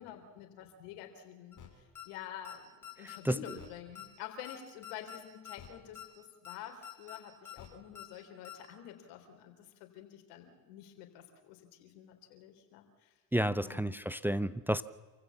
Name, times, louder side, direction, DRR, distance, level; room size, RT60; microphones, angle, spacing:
voice 1, 0.0-13.1 13.6-14.0, left 10 dB, 75° left, 3.8 m, -48 dB
sound 1, 1.5-1.7 1.9-2.0 2.4-2.6 2.8-3.2 3.4-3.7 3.9-4.1 4.4-4.6 4.8-5.2 5.4-5.7 5.9-6.1 6.4-6.6 6.8-7.2 7.4-7.7 7.9-8.1 8.4-8.6, left 10 dB, 40° left, 5.6 m, -47 dB
voice 2, 13.3-14.8, right 1 dB, 5° right, 0.7 m, -31 dB
27.5 x 15.5 x 7.2 m
hypercardioid pair, 70°, 48 cm